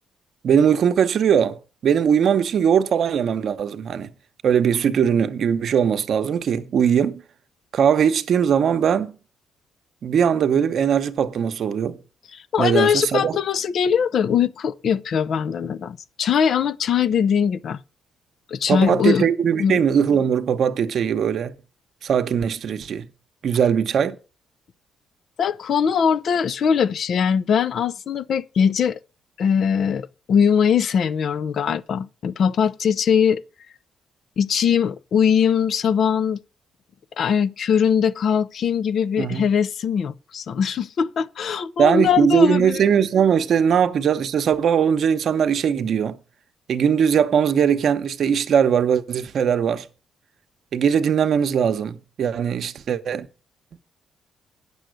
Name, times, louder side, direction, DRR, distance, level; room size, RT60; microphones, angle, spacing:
voice 1, 0.4-1.6 1.8-4.1 4.4-7.2 7.7-9.1 10.0-12.0 12.6-13.4 18.7-21.5 22.0-23.1 23.4-24.2 39.2-39.4 41.8-46.2 46.7-49.9 50.7-53.3, right 8 dB, 60° right, 0.8 m, -20 dB
voice 2, 12.3-17.8 18.5-19.3 19.6-19.8 25.4-29.0 29.4-33.4 34.4-36.4 37.2-42.9, left 7 dB, 60° left, 0.5 m, -21 dB
9.0 x 7.0 x 6.3 m
cardioid pair, 90°, 0 cm